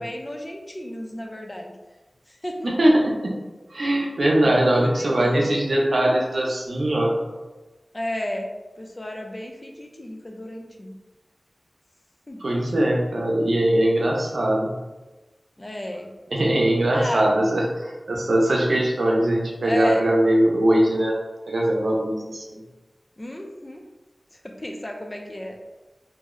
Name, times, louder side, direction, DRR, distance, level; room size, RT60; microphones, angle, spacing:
voice 1, 0.0-1.7 2.3-2.6 4.4-4.5 5.0-5.4 7.9-8.5 8.8-10.9 12.3-12.4 15.6-16.1 16.9-17.4 19.6-20.1 23.2-23.8 24.4-25.5, left 1 dB, 30° left, 2 dB, 0.4 m, -33 dB
voice 2, 2.6-3.3 3.7-7.2 12.4-14.7 16.3-21.1 21.5-22.6, right 1 dB, 85° right, -2 dB, 0.6 m, -21 dB
2.6 x 2.0 x 3.6 m, 1.1 s
wide cardioid pair, 60°, 0 cm